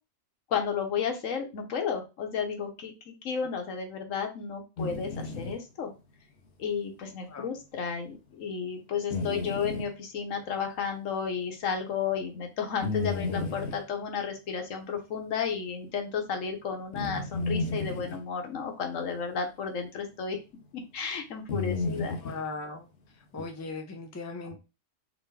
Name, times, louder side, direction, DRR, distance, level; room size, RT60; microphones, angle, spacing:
voice 1, 0.5-5.9 6.6-20.4 20.9-22.2, left 6 dB, 85° left, 1.3 m, -33 dB
sound 1, 4.8-5.6 9.1-9.9 12.8-13.8 16.9-18.2 20.1-20.2 21.5-22.4 23.4-23.5, left 3 dB, 65° left, 1.0 m, -32 dB
voice 2, 21.9-22.9 23.3-24.6, left 3 dB, 20° left, 0.5 m, -38 dB
3.8 x 3.0 x 3.2 m
omnidirectional pair, 1.3 m